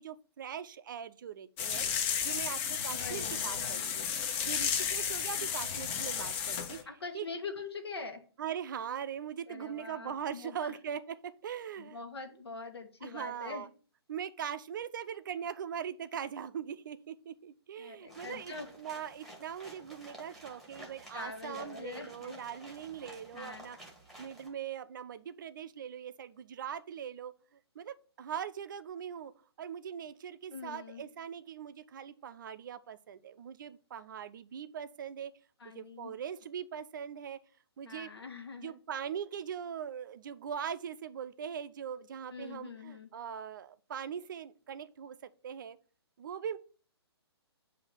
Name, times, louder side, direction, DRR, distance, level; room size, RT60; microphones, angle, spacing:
voice 1, 0.0-1.9 2.2-6.8 7.1-7.3 8.4-11.2 11.4-12.0 13.0-13.7 14.1-23.8 24.2-29.3 29.6-35.3 35.7-37.4 37.8-38.1 38.6-45.8 46.2-46.6, right 8 dB, 45° right, 13 dB, 0.5 m, -41 dB
sound 1, 1.6-6.8, left 7 dB, 25° left, 0.6 m, -33 dB
voice 2, 2.9-3.8 6.9-8.2 9.5-10.7 11.8-13.6 17.8-18.7 21.1-22.4 23.3-23.7 30.5-31.0 35.6-36.1 37.8-38.7 42.3-43.1, left 4 dB, 65° left, 5 dB, 1.3 m, -44 dB
sound 2, 18.1-24.5, right 1 dB, ahead, 1.3 m, -52 dB
7.8 x 2.8 x 5.5 m, 0.40 s
figure-of-eight pair, 135°, 14 cm